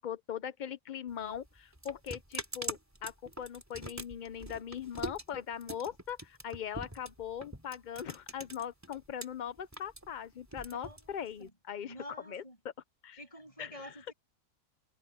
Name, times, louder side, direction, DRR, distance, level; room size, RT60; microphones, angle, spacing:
voice 1, 0.0-11.9 12.3-12.4 13.0-13.2 13.6-14.0, left 9 dB, 50° left, 0.5 m, -40 dB
sound 1, 1.1-9.3 9.6-11.5, right 1 dB, 10° right, 2.9 m, -43 dB
voice 2, 10.8-11.5 11.8-12.6 13.2-14.1, equal, 25° left, 8.0 m, -49 dB
omnidirectional pair, 1.5 m